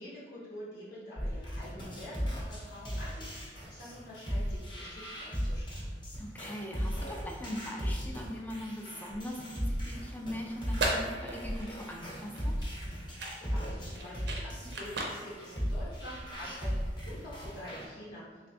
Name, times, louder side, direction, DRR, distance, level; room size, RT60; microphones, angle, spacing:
voice 1, 0.0-5.8 13.3-18.2, left 1 dB, 65° left, -8 dB, 0.9 m, -47 dB
sound 1, 1.2-17.9, equal, 25° left, 0.8 m, -37 dB
voice 2, 6.2-12.6, equal, 10° left, 0 dB, 0.4 m, -41 dB
sound 2, 10.5-16.5, right 2 dB, 65° right, 0.6 m, -38 dB
3.3 x 3.2 x 2.7 m, 1.4 s
head